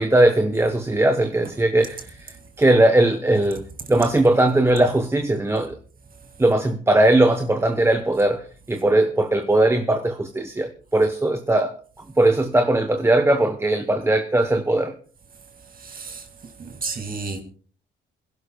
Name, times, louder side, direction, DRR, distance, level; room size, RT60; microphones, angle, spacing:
voice 1, 0.0-5.8 6.4-11.7 12.2-14.9, right 1 dB, 15° right, 1.0 m, -19 dB
voice 2, 15.8-16.3 16.6-17.4, right 4 dB, 45° right, 2.4 m, -32 dB
26.5 x 11.5 x 2.3 m
cardioid pair, 90°, 20 cm